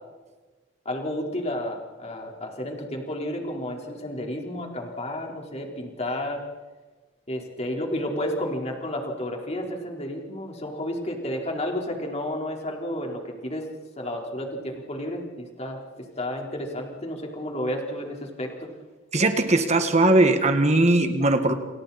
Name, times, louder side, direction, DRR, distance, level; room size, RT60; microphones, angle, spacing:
voice 1, 0.8-6.4 7.3-13.7 14.0-18.7, left 1 dB, 35° left, 1 dB, 4.4 m, -31 dB
voice 2, 19.1-21.5, right 2 dB, 35° right, 7 dB, 1.9 m, -19 dB
29.0 x 28.5 x 4.4 m, 1.3 s
head